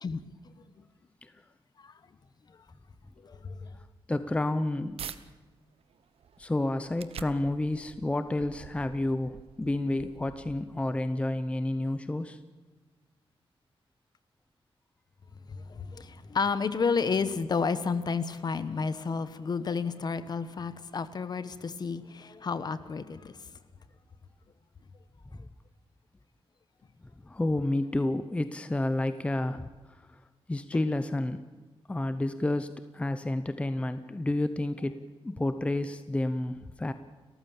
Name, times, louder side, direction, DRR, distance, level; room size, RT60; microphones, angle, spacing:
voice 1, 3.2-3.7 15.5-23.4, left 5 dB, 45° left, 13 dB, 1.2 m, -31 dB
voice 2, 4.1-5.0 6.4-12.4 25.3-25.4 27.2-30.2 30.5-31.4 31.9-36.9, left 1 dB, 10° left, 11 dB, 0.7 m, -30 dB
sound 1, 4.1-5.2 5.7-11.0, right 8 dB, 85° right, 1.1 m, -47 dB
30.0 x 14.5 x 7.2 m, 1.4 s
wide cardioid pair, 175°, 10 cm